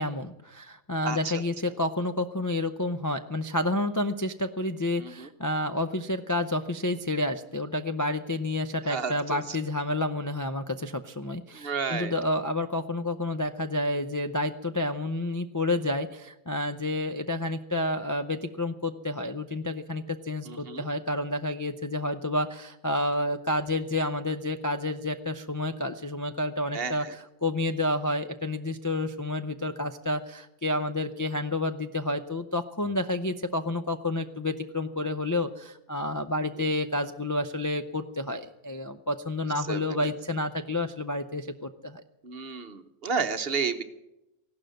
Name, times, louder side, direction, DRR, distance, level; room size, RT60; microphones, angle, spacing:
voice 1, 0.0-42.0, left 1 dB, 25° left, 5 dB, 0.4 m, -30 dB
voice 2, 1.0-1.4 5.0-5.3 8.8-9.4 11.5-12.1 20.5-20.9 26.7-27.1 36.6-36.7 39.7-40.1 42.2-43.8, right 5 dB, 50° right, 10 dB, 1.2 m, -32 dB
15.5 x 12.0 x 7.7 m, 0.91 s
omnidirectional pair, 1.3 m